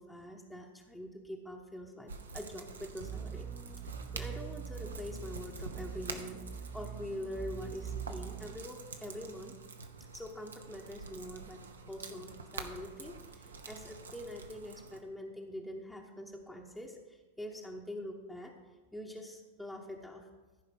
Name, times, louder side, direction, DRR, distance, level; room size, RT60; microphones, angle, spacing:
voice 1, 0.0-3.5 3.8-9.5 10.1-18.5 18.9-20.3, left 1 dB, 5° left, -1 dB, 1.0 m, -44 dB
sound 1, 2.1-15.0, right 4 dB, 70° right, 0.9 m, -47 dB
sound 2, 3.0-8.6, right 7 dB, 20° right, 0.4 m, -43 dB
14.5 x 5.0 x 6.2 m, 1.3 s
figure-of-eight pair, 90°, 0 cm